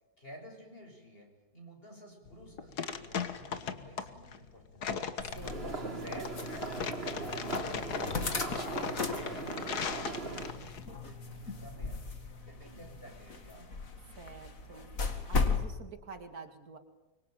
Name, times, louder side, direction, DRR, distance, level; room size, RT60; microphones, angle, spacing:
voice 1, 0.2-4.9 5.6-8.9 9.3-12.1 12.5-13.7, equal, 35° left, 3 dB, 6.5 m, -51 dB
sound 1, 2.3-10.8, left 6 dB, 85° left, 2.0 m, -38 dB
voice 2, 5.1-5.8 14.2-14.9 15.3-16.8, right 4 dB, 75° right, 6 dB, 2.7 m, -48 dB
sound 2, 5.2-15.7, left 4 dB, 60° left, 2.6 m, -37 dB
sound 3, 5.4-10.5, right 3 dB, 40° right, 3.4 m, -39 dB
24.5 x 23.5 x 9.1 m, 1.1 s
omnidirectional pair, 1.6 m